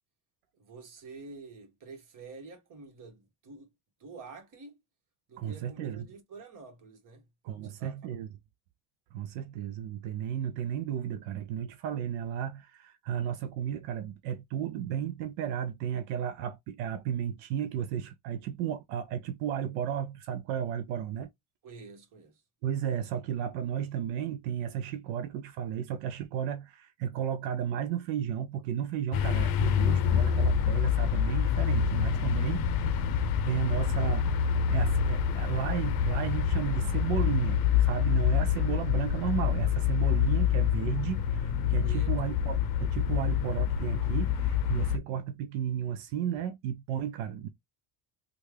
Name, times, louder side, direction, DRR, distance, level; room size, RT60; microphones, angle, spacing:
voice 1, 0.5-3.7 4.0-4.7 5.3-8.1 21.6-22.4 41.8-42.1, right 4 dB, 45° right, 1.4 m, -48 dB
voice 2, 5.4-6.1 7.4-8.3 9.1-21.3 22.6-32.7 33.4-47.5, right 9 dB, 85° right, 0.6 m, -33 dB
sound 1, 29.1-45.0, left 8 dB, 55° left, 0.6 m, -27 dB
3.2 x 2.3 x 3.3 m
cardioid pair, 120°, 44 cm